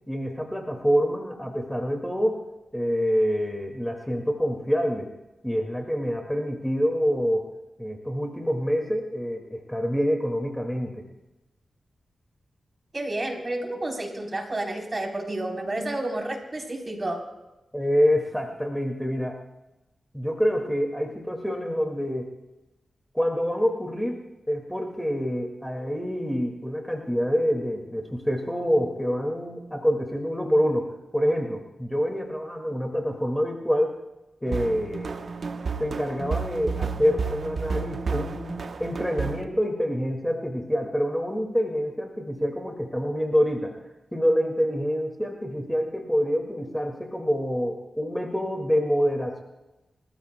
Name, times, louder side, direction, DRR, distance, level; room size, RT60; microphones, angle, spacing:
voice 1, 0.1-2.4 2.7-5.1 5.4-7.5 7.8-11.0 17.7-19.4 20.1-22.3 23.1-33.9 34.4-35.3 35.8-43.7 44.1-49.4, equal, 5° left, 2 dB, 2.0 m, -26 dB
voice 2, 12.9-17.3, right 1 dB, 40° right, 1 dB, 3.6 m, -30 dB
sound 1, 34.5-39.4, right 5 dB, 70° right, 0.9 m, -31 dB
28.5 x 14.0 x 2.2 m, 1.0 s
cardioid pair, 50°, 0 cm